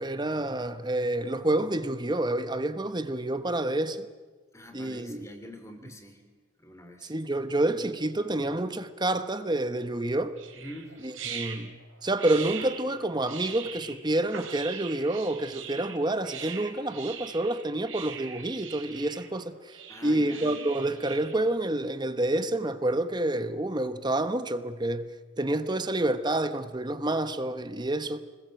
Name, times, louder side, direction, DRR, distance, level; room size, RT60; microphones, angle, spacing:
voice 1, 0.0-4.0 4.7-5.3 5.8-5.9 7.0-10.3 11.0-25.1 25.4-28.2, right 1 dB, 20° right, 1.0 m, -28 dB
voice 2, 4.5-6.2 6.6-7.1 10.5-11.0 19.9-20.6, equal, 15° left, 3.0 m, -44 dB
sound 1, 10.4-21.3, right 7 dB, 80° right, 4.0 m, -41 dB
26.5 x 20.0 x 7.9 m
head